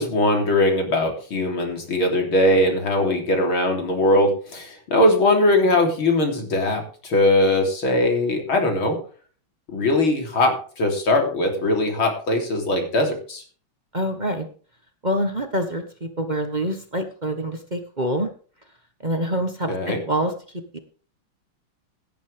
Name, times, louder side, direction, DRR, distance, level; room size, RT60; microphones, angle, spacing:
voice 1, 0.0-9.0 9.7-13.4 19.7-20.0, left 1 dB, 90° left, 2 dB, 4.3 m, -20 dB
voice 2, 13.9-14.5 15.0-18.3 19.0-19.7 20.0-20.3 20.7-20.8, equal, 25° right, 6 dB, 1.3 m, -25 dB
17.5 x 10.5 x 3.5 m, 0.41 s
omnidirectional pair, 2.2 m